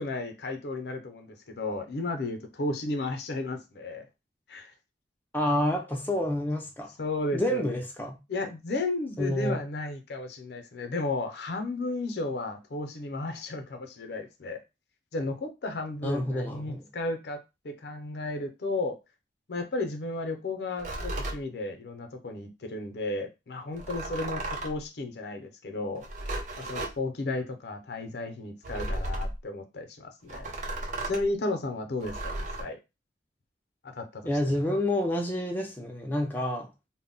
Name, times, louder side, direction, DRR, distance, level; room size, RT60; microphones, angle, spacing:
voice 1, 0.0-4.1 4.5-4.7 7.0-7.8 8.3-14.6 15.1-17.4 17.6-19.0 19.5-30.5 31.0-32.8 33.8-34.3, left 2 dB, 70° left, 0.5 m, -34 dB
voice 2, 5.3-6.9 7.3-8.2 9.2-9.6 16.0-16.9 34.2-36.7, left 1 dB, 10° left, 0.4 m, -28 dB
sound 1, 20.8-21.4 23.7-24.8 26.0-27.0 28.6-29.4 30.3-31.3 32.0-32.6, right 1 dB, 45° right, 0.5 m, -34 dB
2.1 x 2.0 x 3.7 m
head